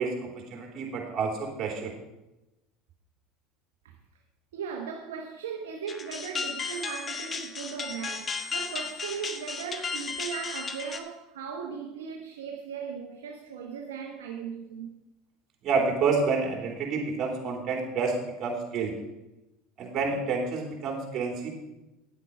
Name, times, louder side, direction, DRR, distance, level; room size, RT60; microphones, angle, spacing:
voice 1, 0.0-1.9 15.6-18.9 19.8-21.5, right 4 dB, 45° right, 3.3 m, -29 dB
voice 2, 4.5-14.9, right 7 dB, 85° right, 1.0 m, -38 dB
sound 1, 5.9-11.0, left 5 dB, 30° left, 1.2 m, -35 dB
10.0 x 8.3 x 5.3 m
hypercardioid pair, 85°, 0 cm